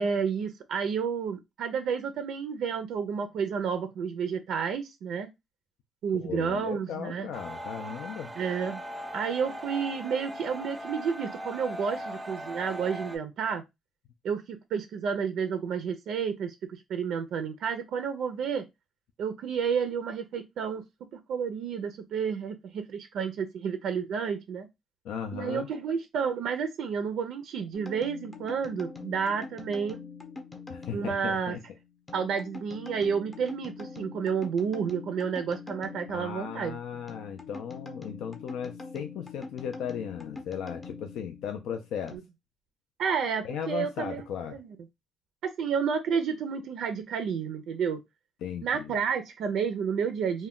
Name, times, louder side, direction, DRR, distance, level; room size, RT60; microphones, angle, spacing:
voice 1, 0.0-5.3 6.0-7.3 8.4-8.8 9.1-13.6 14.2-18.6 19.2-20.8 21.3-24.7 25.3-30.0 30.9-31.6 32.1-37.0 43.0-44.2 44.5-44.8 45.6-48.0 48.6-50.5, right 6 dB, 75° right, 0.4 m, -30 dB
voice 2, 6.2-8.3 25.0-25.7 30.7-31.6 36.1-42.2 43.4-44.6 48.4-48.9, left 8 dB, 85° left, 0.3 m, -36 dB
sound 1, 7.3-13.2, equal, 20° right, 0.4 m, -39 dB
sound 2, 27.7-42.2, left 4 dB, 25° left, 0.6 m, -44 dB
2.2 x 2.1 x 3.5 m
cardioid pair, 90°, 0 cm